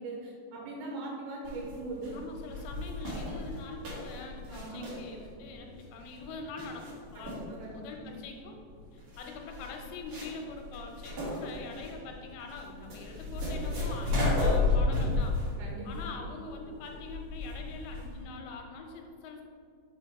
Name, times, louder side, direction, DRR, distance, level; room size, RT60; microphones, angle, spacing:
voice 1, 0.0-2.2 4.5-4.9 7.2-8.1 14.8-15.0 15.6-16.2, right 2 dB, 85° right, -2 dB, 2.9 m, -41 dB
sound 1, 1.4-18.2, left 3 dB, 55° right, 1.7 m, -33 dB
voice 2, 2.1-8.6 8.9-15.4 15.8-19.4, left 3 dB, 80° left, 2 dB, 2.9 m, -44 dB
6.3 x 4.0 x 4.1 m, 2.3 s
omnidirectional pair, 5.2 m